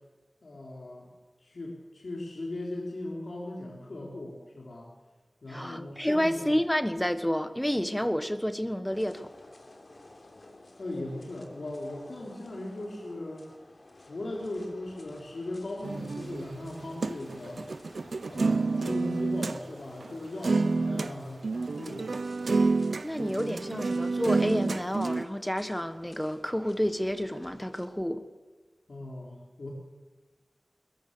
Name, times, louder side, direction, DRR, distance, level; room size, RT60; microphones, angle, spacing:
voice 1, 0.4-1.1 1.4-4.9 5.4-6.5 10.8-13.5 14.0-17.6 18.3-21.5 21.7-22.2 28.9-29.7, left 1 dB, 80° left, -2 dB, 3.7 m, -38 dB
voice 2, 5.5-9.3 23.0-28.2, equal, 10° left, 10 dB, 1.3 m, -30 dB
sound 1, 8.9-27.9, left 2 dB, 55° left, 3.3 m, -53 dB
sound 2, 15.8-19.6 20.0-20.1 20.4-21.1 21.4-25.2, right 3 dB, 90° right, 0.6 m, -29 dB
22.0 x 21.5 x 6.8 m, 1.2 s
wide cardioid pair, 65°, 0 cm